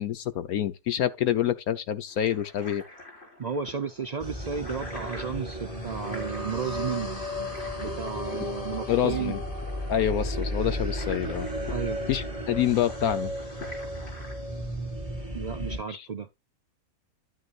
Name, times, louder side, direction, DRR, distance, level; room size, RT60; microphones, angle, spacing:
voice 1, 0.0-2.8 8.9-9.4 9.9-11.5 12.1-13.3 15.9-16.1, left 10 dB, 70° left, 1.2 m, -27 dB
sound 1, 2.1-14.4, left 2 dB, 40° left, 5.1 m, -46 dB
voice 2, 3.4-7.1 7.8-9.4 11.7-12.0 15.3-16.3, right 6 dB, 75° right, 0.3 m, -33 dB
sound 2, 4.2-15.8, equal, 20° left, 4.1 m, -34 dB
11.5 x 9.6 x 2.5 m
omnidirectional pair, 1.6 m